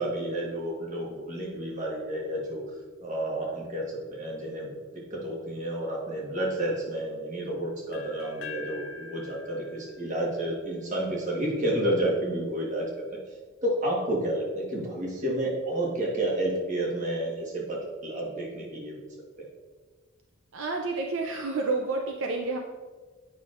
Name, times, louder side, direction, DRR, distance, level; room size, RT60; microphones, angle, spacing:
voice 1, 0.0-2.6 3.0-13.2 13.6-19.0 19.4-19.5, right 1 dB, 35° right, -3 dB, 1.3 m, -30 dB
sound 1, 7.9-11.8, left 4 dB, 70° left, 0.5 m, -45 dB
voice 2, 20.5-22.6, right 3 dB, 65° right, 2 dB, 0.5 m, -29 dB
8.5 x 5.7 x 2.5 m, 1.4 s
head